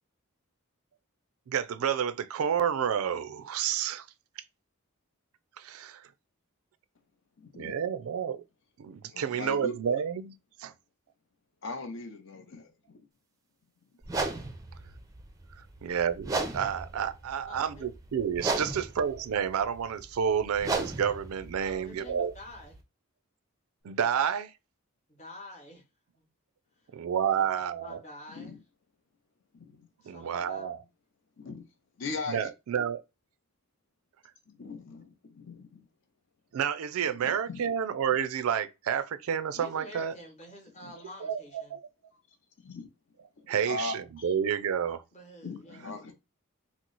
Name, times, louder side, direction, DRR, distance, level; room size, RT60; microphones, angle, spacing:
voice 1, 1.5-4.0 5.6-6.0 7.6-8.4 8.8-10.3 10.6-10.7 15.8-22.3 23.8-24.5 26.9-28.0 30.1-30.8 32.3-33.0 36.5-40.1 41.2-41.8 43.5-43.9 44.2-45.0, right 8 dB, 80° right, 0.4 m, -30 dB
voice 2, 7.4-7.8 9.1-9.7 11.6-13.1 28.3-28.6 29.5-29.9 31.4-31.7 32.0-32.5 34.5-35.9 37.1-37.7 40.8-40.9 42.1-42.2 42.6-42.9 43.4-44.3 45.4-46.1, left 3 dB, 55° left, 0.6 m, -40 dB
sound 1, 14.0-22.8, right 3 dB, 15° right, 0.4 m, -36 dB
voice 3, 17.5-17.9 18.6-18.8 21.6-22.8 25.1-25.8 26.2-26.3 27.3-27.5 27.8-28.5 30.0-30.9 39.5-41.8 45.1-46.1, left 1 dB, 30° left, 0.9 m, -48 dB
3.0 x 2.0 x 3.8 m
head